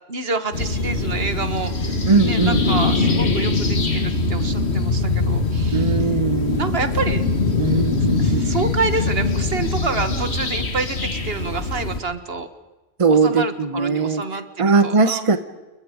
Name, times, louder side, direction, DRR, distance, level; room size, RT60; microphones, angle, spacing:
voice 1, 0.1-2.0 2.2-6.2 6.6-7.3 8.2-12.5 13.1-15.3, right 4 dB, 65° right, 10 dB, 1.7 m, -28 dB
sound 1, 0.5-12.0, left 3 dB, 75° left, 2.3 m, -22 dB
voice 2, 2.1-2.6 5.7-6.7 7.6-8.6 13.0-14.2 14.6-15.4, right 4 dB, 30° right, 10 dB, 1.1 m, -20 dB
29.5 x 21.5 x 5.1 m, 1.2 s
omnidirectional pair, 1.1 m